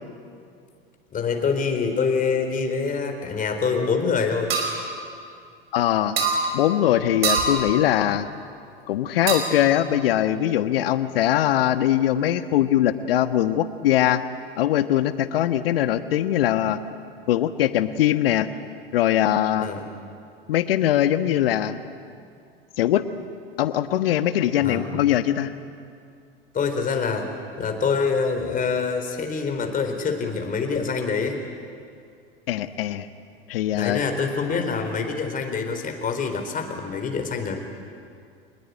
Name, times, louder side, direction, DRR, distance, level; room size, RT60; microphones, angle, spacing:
voice 1, 1.1-4.5 19.6-19.9 24.6-24.9 26.5-27.3 27.6-31.4 33.7-37.6, left 5 dB, 25° left, 5 dB, 4.2 m, -25 dB
sound 1, 4.5-4.7 6.2-6.4 7.2-7.6 9.3-9.6, right 4 dB, 75° right, 5.4 m, -22 dB
voice 2, 5.7-6.2 6.5-8.3 8.9-14.2 14.6-16.8 17.3-18.5 18.9-19.7 20.5-21.8 22.8-23.0 23.6-25.5 32.5-33.1 33.5-34.0, left 12 dB, 65° left, 11 dB, 1.4 m, -21 dB
25.5 x 20.5 x 9.6 m, 2.4 s
figure-of-eight pair, 85°, 31 cm